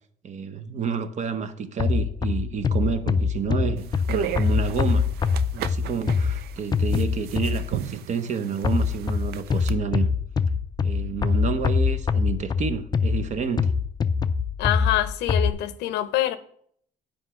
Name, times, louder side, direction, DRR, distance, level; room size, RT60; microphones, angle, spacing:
voice 1, 0.2-5.1 5.5-10.1 10.8-13.7, right 6 dB, 45° right, 0.8 m, -29 dB
sound 1, 1.8-7.9 8.6-15.5, left 5 dB, 25° left, 0.4 m, -24 dB
sound 2, 3.8-9.7, right 10 dB, 70° right, 0.5 m, -35 dB
voice 2, 14.6-16.4, left 13 dB, 85° left, 0.7 m, -25 dB
7.9 x 5.1 x 5.7 m
cardioid pair, 110°, 17 cm